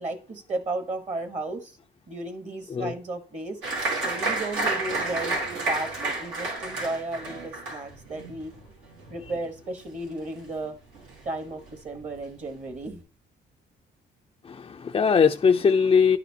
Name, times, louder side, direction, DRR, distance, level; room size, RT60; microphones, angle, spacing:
voice 1, 0.0-1.8 2.1-3.6 4.0-8.5 9.1-10.8 11.2-13.0, right 2 dB, 35° right, 1.1 m, -34 dB
Applause, 3.6-10.7 10.9-11.7 12.1-12.2 12.5-12.9, right 3 dB, 90° right, 2.0 m, -31 dB
voice 2, 14.4-16.2, left 6 dB, 25° left, 0.3 m, -20 dB
10.0 x 4.1 x 2.7 m
cardioid pair, 90°, 20 cm